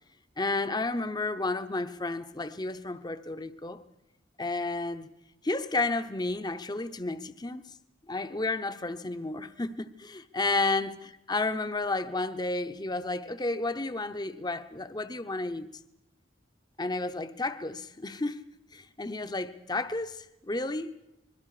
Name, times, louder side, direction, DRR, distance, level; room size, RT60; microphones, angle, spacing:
voice 1, 0.4-3.8 4.4-5.1 5.4-7.6 8.1-11.0 11.3-15.7 16.8-18.4 18.7-20.9, left 2 dB, 20° left, 0.7 m, -32 dB
26.5 x 21.5 x 4.9 m
head